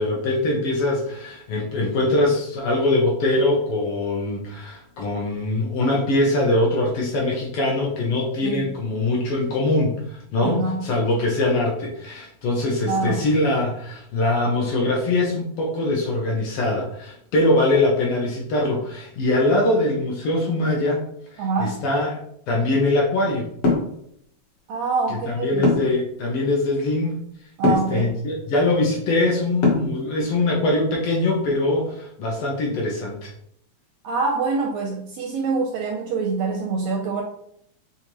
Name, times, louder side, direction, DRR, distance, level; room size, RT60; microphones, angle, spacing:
voice 1, 0.0-21.0 21.3-22.2 22.5-23.5 25.1-27.2 27.6-33.3, left 2 dB, 75° left, -1 dB, 1.3 m, -22 dB
voice 2, 10.4-10.8 12.9-13.3 21.4-21.8 24.7-25.7 27.6-28.1 34.0-37.2, right 4 dB, 80° right, 2 dB, 1.5 m, -25 dB
sound 1, 23.6-23.9 25.6-26.0 27.6-27.9 29.6-30.0, left 3 dB, 60° left, 1.9 m, -19 dB
6.7 x 2.4 x 3.0 m, 0.71 s
omnidirectional pair, 3.4 m